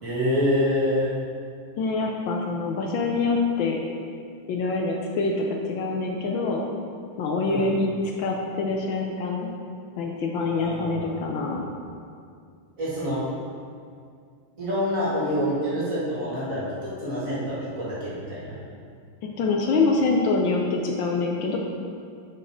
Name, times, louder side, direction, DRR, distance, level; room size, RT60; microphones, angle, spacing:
voice 1, 0.0-1.1 7.4-7.8 10.5-11.1 12.8-13.2 14.6-18.6, equal, 40° right, -10 dB, 2.6 m, -26 dB
voice 2, 1.8-3.8 4.5-6.7 7.2-7.9 8.2-9.5 10.0-11.6 19.2-21.6, left 3 dB, 70° left, 1 dB, 1.3 m, -25 dB
6.5 x 6.4 x 5.0 m, 2.3 s
omnidirectional pair, 2.3 m